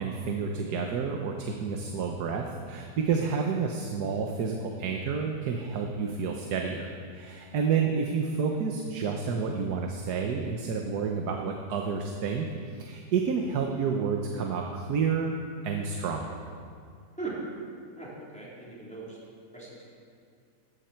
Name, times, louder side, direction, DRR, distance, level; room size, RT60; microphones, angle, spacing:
voice 1, 0.0-15.4 15.6-16.3, right 5 dB, 70° right, 2 dB, 1.4 m, -30 dB
voice 2, 18.0-19.2 19.5-19.7, right 3 dB, 5° left, -7 dB, 3.7 m, -39 dB
16.0 x 13.0 x 4.5 m, 2.3 s
omnidirectional pair, 1.8 m